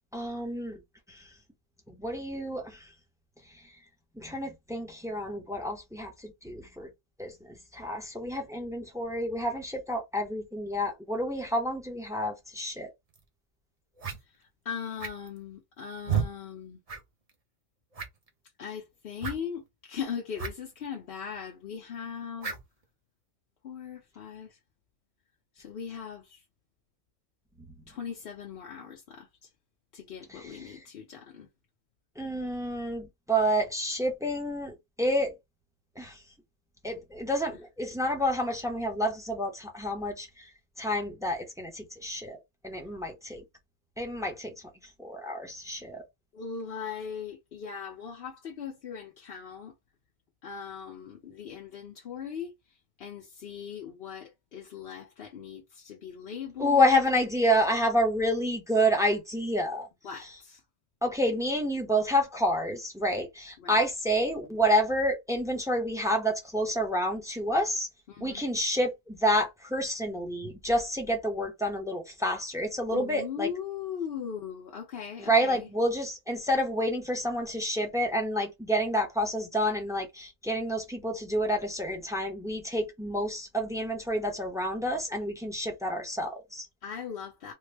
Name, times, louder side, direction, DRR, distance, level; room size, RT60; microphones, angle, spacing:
voice 1, 0.1-0.8 1.1-1.3 2.0-2.9 4.2-6.9 7.2-12.9 30.3-30.8 32.2-35.4 36.0-36.2 36.8-40.5 40.8-43.4 44.0-44.5 45.0-46.0 56.6-59.9 61.0-67.9 68.2-73.5 75.2-86.7, equal, 5° right, 0.6 m, -29 dB
sound 1, 13.1-13.2 14.0-14.2 15.0-15.4 16.0-16.3 16.9-17.0 17.3-17.4 17.9-18.3 19.2-19.4 20.4-20.5 20.8-20.9 22.4-22.6, right 7 dB, 35° right, 0.8 m, -31 dB
voice 2, 14.4-16.8 18.6-22.5 23.6-24.6 25.5-26.4 27.9-29.5 29.9-31.5 46.3-49.7 50.4-52.5 53.0-57.0 60.0-60.6 63.6-63.8 68.1-68.4 72.9-75.7 86.8-87.5, left 7 dB, 55° left, 0.8 m, -39 dB
3.5 x 2.1 x 3.3 m
omnidirectional pair, 1.3 m